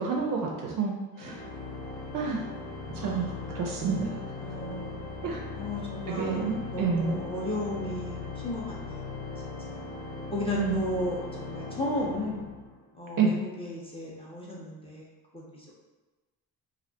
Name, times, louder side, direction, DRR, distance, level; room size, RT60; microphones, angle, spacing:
voice 1, 0.0-1.4 2.1-2.4 3.0-4.1 5.2-5.4 6.2-7.2 10.5-10.8 13.2-13.3, right 5 dB, 40° right, -1 dB, 0.5 m, -29 dB
Organ, 1.2-13.0, left 3 dB, 65° left, 0.7 m, -39 dB
voice 2, 2.9-3.8 4.4-9.3 9.6-9.8 10.3-12.5 12.9-15.7, left 1 dB, 10° left, -5 dB, 0.5 m, -35 dB
2.3 x 2.1 x 2.6 m, 1.2 s
hypercardioid pair, 45°, 50 cm